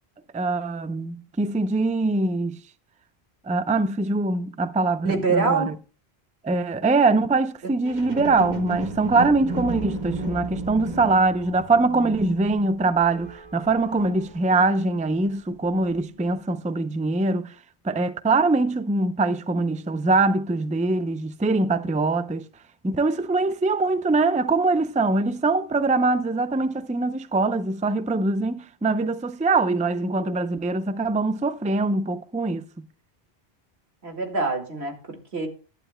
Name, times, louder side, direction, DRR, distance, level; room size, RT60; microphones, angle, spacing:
voice 1, 0.3-2.6 3.4-5.7 6.4-17.5 17.8-22.5 22.8-32.6, right 3 dB, 10° right, 0.4 m, -23 dB
voice 2, 5.0-5.7 34.0-35.5, right 4 dB, 90° right, 2.3 m, -25 dB
sound 1, 7.8-15.3 15.9-16.0, right 3 dB, 45° right, 1.7 m, -35 dB
20.0 x 11.5 x 2.2 m
omnidirectional pair, 1.1 m